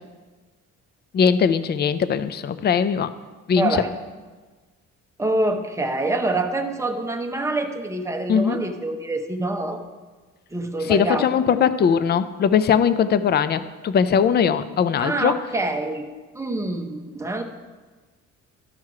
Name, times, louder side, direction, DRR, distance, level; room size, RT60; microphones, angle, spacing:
voice 1, 1.1-3.1 3.5-3.8 8.3-8.6 10.9-15.3, left 7 dB, 35° left, 14 dB, 0.4 m, -20 dB
voice 2, 3.6-3.9 5.2-9.8 10.5-11.2 15.0-16.1 16.3-17.4, right 2 dB, 10° right, 4 dB, 0.8 m, -25 dB
12.5 x 4.6 x 4.7 m, 1.3 s
cardioid pair, 110°, 32 cm